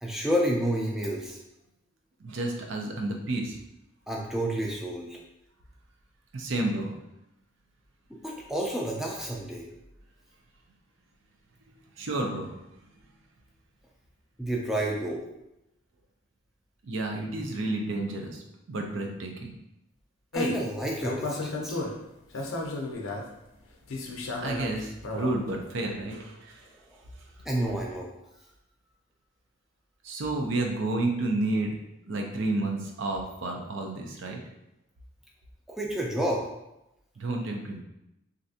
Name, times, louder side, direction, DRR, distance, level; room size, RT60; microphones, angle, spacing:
voice 1, 0.0-1.4 4.1-5.2 8.1-9.7 14.4-15.2 20.3-21.8 27.5-28.1 35.7-36.4, right 1 dB, ahead, -2 dB, 0.4 m, -30 dB
voice 2, 2.2-3.6 6.3-6.9 12.0-12.5 16.9-18.4 18.7-19.5 24.4-26.7 30.0-31.7 32.1-34.4 37.2-37.8, right 2 dB, 65° right, 2 dB, 0.5 m, -30 dB
sound 1, 20.3-20.7 21.0-22.0 22.3-23.2 23.9-25.3, left 2 dB, 75° left, 0.5 m, -33 dB
3.2 x 2.6 x 2.7 m, 0.88 s
head